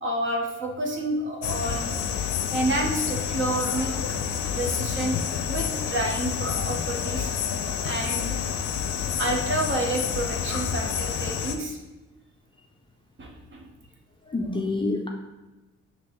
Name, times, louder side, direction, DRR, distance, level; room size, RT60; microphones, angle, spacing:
voice 1, 0.0-2.0 2.5-3.9 4.5-5.2 5.5-7.3 7.8-8.4 9.2-11.8 13.2-13.6, right 1 dB, 40° right, 1 dB, 0.9 m, -29 dB
sound 1, 1.4-11.6, left 7 dB, 70° left, 0.5 m, -29 dB
voice 2, 14.3-15.1, left 2 dB, 15° left, 1 dB, 0.4 m, -27 dB
5.2 x 3.0 x 3.1 m, 1.1 s
cardioid pair, 90°, 30 cm